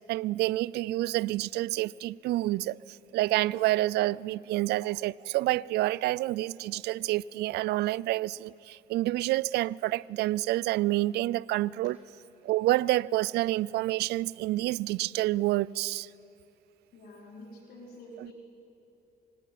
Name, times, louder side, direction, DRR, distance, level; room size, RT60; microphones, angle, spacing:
voice 1, 0.1-12.0 12.4-16.1 18.2-18.3, right 17 dB, 75° right, 0.5 m, -28 dB
voice 2, 16.9-18.3, left 1 dB, 70° left, 4.7 m, -48 dB
25.0 x 22.0 x 9.3 m
cardioid pair, 110°, 17 cm